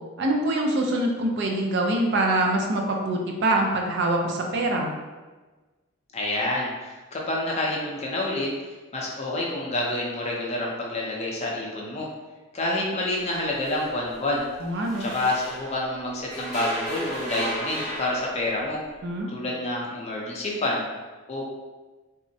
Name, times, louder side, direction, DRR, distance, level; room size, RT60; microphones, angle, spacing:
voice 1, 0.2-4.9 14.6-15.1 19.0-19.3, right 1 dB, 60° right, 1 dB, 0.4 m, -24 dB
voice 2, 6.1-8.5 8.9-12.1 12.5-14.4 15.0-18.8 19.3-20.9 21.3-21.5, left 1 dB, 35° left, -3 dB, 0.5 m, -28 dB
sound 1, 13.1-15.9 16.3-18.8, right 1 dB, ahead, 0.8 m, -35 dB
3.5 x 2.0 x 2.7 m, 1.3 s
head